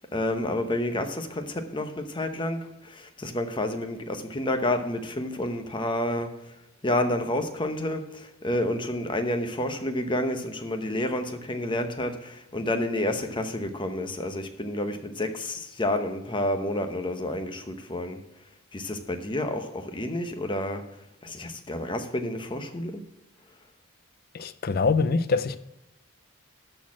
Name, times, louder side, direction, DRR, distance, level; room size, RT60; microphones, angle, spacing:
voice 1, 0.1-18.2 18.7-21.0 21.2-23.1, left 1 dB, 25° left, 0.9 m, -29 dB
voice 2, 24.4-25.6, left 4 dB, 45° left, 0.5 m, -24 dB
12.5 x 4.3 x 7.2 m
head